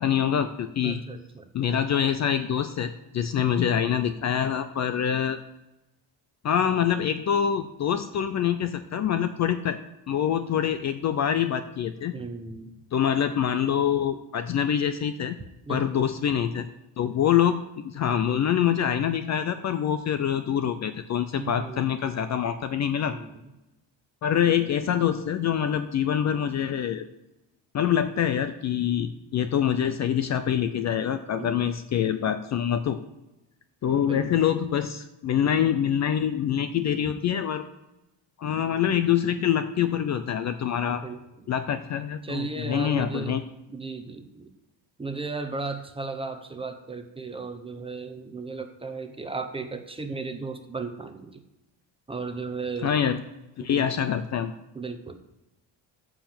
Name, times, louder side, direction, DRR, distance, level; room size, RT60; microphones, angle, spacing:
voice 1, 0.0-1.0 1.5-5.4 6.4-9.8 10.1-12.1 12.9-15.4 15.7-16.7 17.0-23.2 24.2-27.0 27.7-33.0 33.8-37.7 38.4-41.0 41.5-43.4 52.8-53.2 53.6-54.5, left 9 dB, 40° left, 10 dB, 0.5 m, -25 dB
voice 2, 0.8-1.4 12.1-12.7 15.7-16.1 21.4-21.8 23.1-23.3 31.4-31.7 34.0-34.4 40.9-41.5 42.2-43.3 43.7-44.5 45.0-51.4 52.1-53.0 53.6-53.9 54.7-55.2, right 4 dB, 10° right, 6 dB, 0.9 m, -35 dB
14.5 x 4.9 x 7.4 m, 0.93 s
cardioid pair, 170°, 46 cm